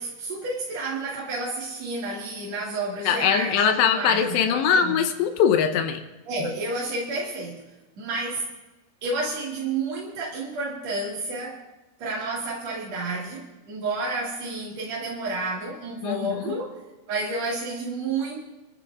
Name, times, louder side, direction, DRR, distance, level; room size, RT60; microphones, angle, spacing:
voice 1, 0.0-5.0 6.3-7.6 8.0-8.4 9.0-11.6 12.0-16.8 17.1-18.4, right 2 dB, 50° right, -6 dB, 2.3 m, -30 dB
voice 2, 3.1-6.0 16.0-16.6, left 7 dB, 80° left, 7 dB, 2.7 m, -22 dB
27.5 x 13.5 x 2.4 m, 1.1 s
omnidirectional pair, 5.6 m